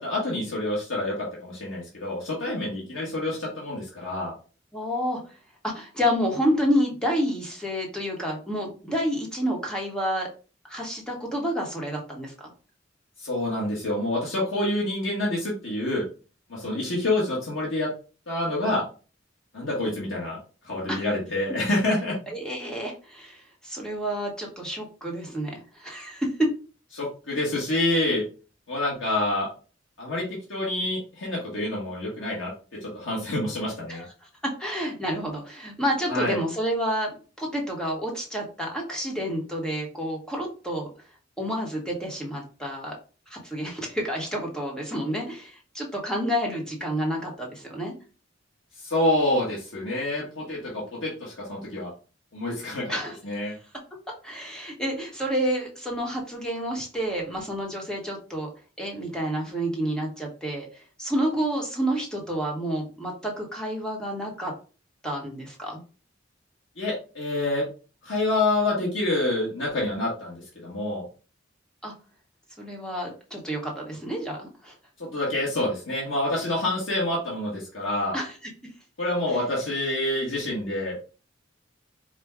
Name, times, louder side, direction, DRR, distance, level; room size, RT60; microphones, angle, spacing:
voice 1, 0.0-4.3 13.2-16.1 16.5-17.9 18.3-18.8 19.5-20.4 20.6-22.1 26.9-28.2 28.7-29.5 30.0-30.2 30.5-32.5 32.8-34.0 36.1-36.4 48.8-51.9 52.3-52.9 53.2-53.5 66.8-67.7 68.0-71.0 75.0-78.2 79.0-81.0, left 1 dB, 85° left, -4 dB, 1.3 m, -27 dB
voice 2, 4.7-5.2 5.6-10.3 10.7-12.5 20.9-21.0 22.3-26.3 33.9-34.0 34.4-37.1 37.4-40.9 41.4-42.9 43.3-47.9 52.9-53.2 54.2-58.5 58.8-64.5 65.0-65.8 71.8-71.9 72.6-74.7 78.1-78.3, equal, 5° left, -1 dB, 1.1 m, -29 dB
5.0 x 2.2 x 3.5 m, 0.35 s
head